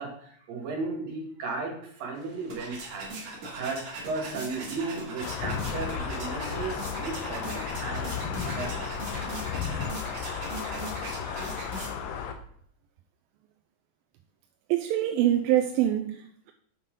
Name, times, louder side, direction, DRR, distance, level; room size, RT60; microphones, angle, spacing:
voice 1, 0.0-3.1 3.6-9.0 10.1-10.4, right 3 dB, 70° right, 3.5 m, -35 dB
sound 1, 2.2-12.2, right 2 dB, 55° right, 3.0 m, -40 dB
sound 2, 5.2-12.3, left 7 dB, 75° left, 2.4 m, -34 dB
voice 2, 14.7-16.5, right 12 dB, 85° right, 2.4 m, -25 dB
7.6 x 5.6 x 5.3 m
omnidirectional pair, 4.2 m